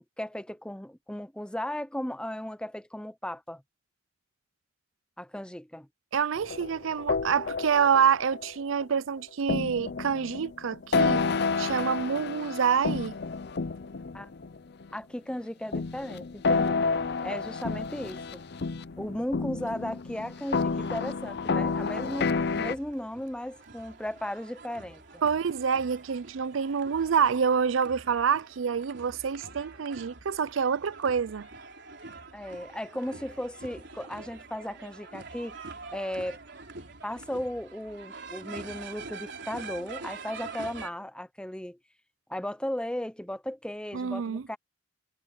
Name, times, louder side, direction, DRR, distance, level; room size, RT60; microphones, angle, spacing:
voice 1, 0.2-3.6 5.2-5.9 14.1-14.3 14.9-18.4 19.0-25.2 32.3-35.6 35.9-36.4 37.0-41.8 42.3-44.6, left 1 dB, 5° left, 0.7 m, -36 dB
voice 2, 6.1-11.2 11.6-13.2 25.2-31.5 43.9-44.4, right 7 dB, 90° right, 0.5 m, -27 dB
sound 1, 6.4-8.8 9.5-14.9 15.7-22.7, left 4 dB, 55° left, 0.6 m, -30 dB
Cheering / Crowd, 19.6-27.2, right 4 dB, 40° right, 5.6 m, -60 dB
sound 2, 21.4-40.9, right 3 dB, 60° right, 4.3 m, -45 dB
head